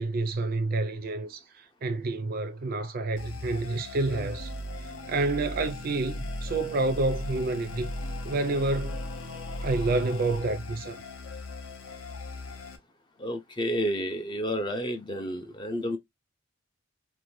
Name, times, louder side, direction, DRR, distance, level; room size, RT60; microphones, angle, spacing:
voice 1, 0.0-4.5 5.1-7.9 8.2-9.0 9.6-11.0, right 2 dB, 40° right, 0.4 m, -29 dB
sound 1, 3.2-12.8, left 1 dB, 65° left, 0.6 m, -37 dB
voice 2, 13.2-16.0, equal, 20° left, 0.4 m, -30 dB
2.6 x 2.1 x 3.0 m
head